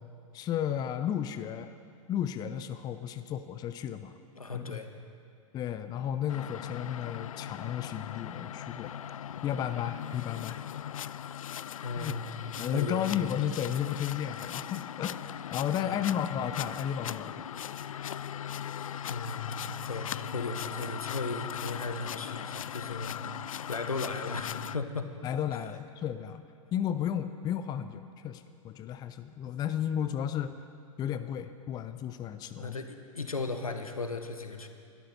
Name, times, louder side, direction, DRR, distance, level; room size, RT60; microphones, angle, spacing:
voice 1, 0.3-1.7 2.1-4.2 4.5-4.8 5.5-9.2 9.4-10.6 11.9-12.2 12.6-15.2 15.5-17.5 25.2-26.4 26.7-30.6 31.0-32.8, left 9 dB, 20° left, 11 dB, 0.6 m, -33 dB
voice 2, 4.3-4.9 11.8-12.3 12.7-13.1 15.8-16.0 19.0-19.6 19.8-23.4 23.7-25.1 25.5-25.7 32.4-34.7, left 3 dB, 85° left, 7 dB, 1.3 m, -36 dB
sound 1, 6.3-24.8, left 9 dB, 70° left, 0.4 m, -39 dB
21.5 x 12.5 x 4.4 m, 2.4 s
figure-of-eight pair, 105°, 18 cm